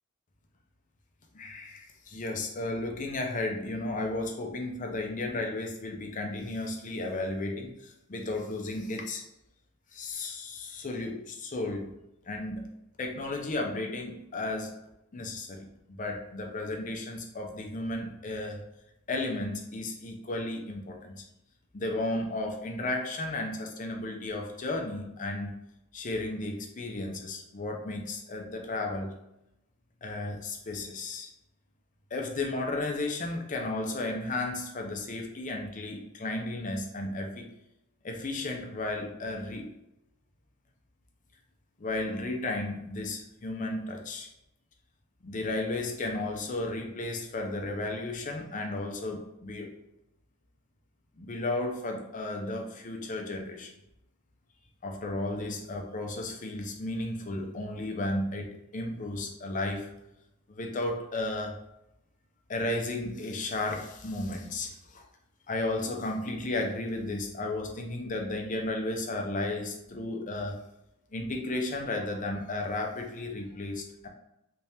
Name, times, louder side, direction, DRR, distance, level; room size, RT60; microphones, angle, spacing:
voice 1, 1.3-9.2 9.9-12.0 12.3-12.7 13.0-14.7 15.1-18.6 19.1-21.2 21.7-25.6 25.9-29.1 30.0-31.3 32.1-37.5 38.0-39.7 41.8-44.3 45.2-49.7 51.2-53.7 54.8-59.9 60.5-61.5 62.5-65.1 65.5-70.6 71.1-74.1, left 2 dB, 40° left, 2 dB, 0.6 m, -34 dB
3.4 x 3.3 x 2.8 m, 0.84 s
head